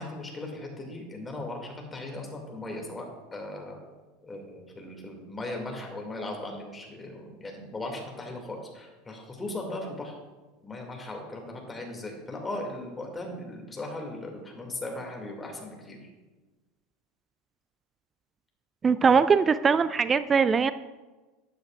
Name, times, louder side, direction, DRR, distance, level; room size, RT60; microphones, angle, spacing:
voice 1, 0.0-3.1 3.3-3.8 4.2-10.2 10.6-16.0, left 2 dB, 15° left, 1 dB, 2.1 m, -38 dB
voice 2, 18.8-20.7, right 5 dB, 25° right, 14 dB, 0.3 m, -21 dB
12.5 x 7.9 x 2.3 m, 1.2 s
figure-of-eight pair, 75°, 0 cm